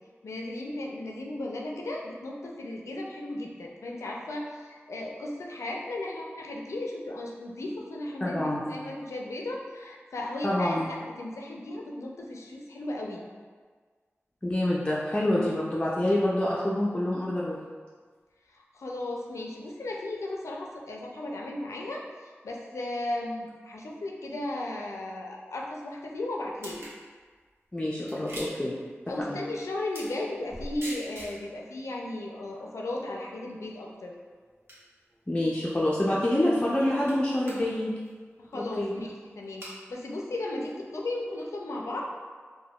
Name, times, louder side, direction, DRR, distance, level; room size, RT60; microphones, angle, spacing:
voice 1, 0.2-13.2 18.5-26.8 29.1-34.1 38.4-42.0, left 1 dB, 85° left, -1 dB, 0.4 m, -35 dB
voice 2, 8.2-8.7 10.4-10.9 14.4-17.6 27.7-28.8 29.3-29.4 35.3-37.9 38.5-38.9, left 1 dB, 20° left, -6 dB, 0.4 m, -27 dB
sound 1, 26.6-27.0 28.1-28.7 29.9-30.2 30.5-35.6 36.2-36.3 36.5-37.2 37.4-37.7 38.0-38.1 38.8-38.9 39.4-39.8 40.6-40.7 41.4-41.5, equal, 55° right, 0.8 m, -45 dB
3.4 x 2.1 x 2.3 m, 1.5 s
cardioid pair, 45°, 5 cm